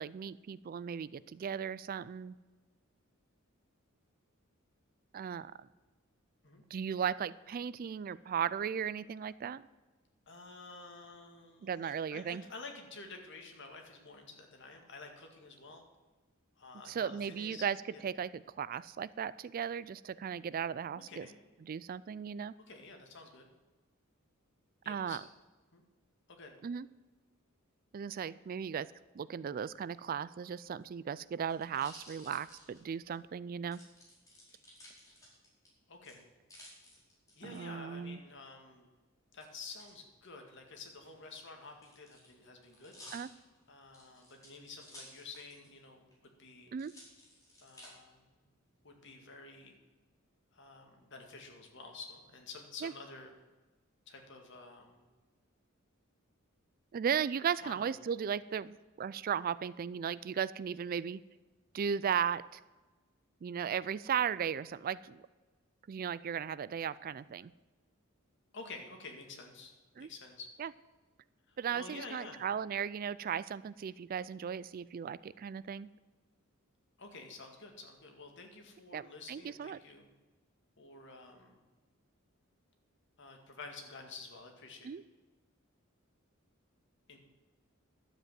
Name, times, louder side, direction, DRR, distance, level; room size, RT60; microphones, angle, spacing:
voice 1, 0.0-2.3 5.1-5.5 6.7-9.6 11.6-12.4 16.9-17.8 18.0-21.3 21.6-22.5 24.9-25.2 26.6-26.9 27.9-33.8 37.4-38.2 43.1-43.3 46.7-46.9 52.8-52.9 56.9-61.2 61.7-62.6 63.4-65.2 65.9-67.5 70.0-70.1 70.6-70.7 71.6-75.9 78.9-79.8 84.8-85.0, right 7 dB, 45° right, 19 dB, 0.3 m, -36 dB
voice 2, 10.3-15.8 16.6-17.7 17.9-18.0 20.9-21.4 22.7-23.5 24.8-25.2 25.7-25.8 26.3-26.6 35.9-36.2 37.4-38.9 39.3-42.9 43.7-46.7 47.6-48.3 48.8-49.8 50.5-53.3 54.1-55.1 57.5-57.9 68.5-70.5 71.5-72.4 77.0-80.1 80.8-81.6 83.2-85.0 87.1-87.2, left 3 dB, 60° left, 3 dB, 2.1 m, -50 dB
sound 1, 30.7-33.2 33.7-35.7 36.0-37.6 39.4-39.9 40.9-45.8 46.1-46.2 46.8-47.9 48.5-49.1, left 1 dB, 15° left, 4.7 m, -56 dB
12.0 x 8.1 x 7.5 m, 1.2 s
head